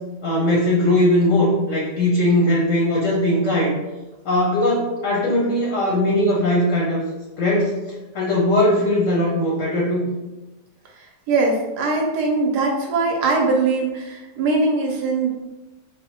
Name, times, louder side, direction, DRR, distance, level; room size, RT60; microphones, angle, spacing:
voice 1, 0.2-3.7 4.2-7.0 7.4-7.8 8.1-10.1, left 1 dB, 60° left, -3 dB, 0.8 m, -19 dB
voice 2, 11.0-15.3, right 3 dB, 75° right, 1 dB, 1.1 m, -21 dB
4.4 x 2.0 x 2.8 m, 1.1 s
omnidirectional pair, 1.9 m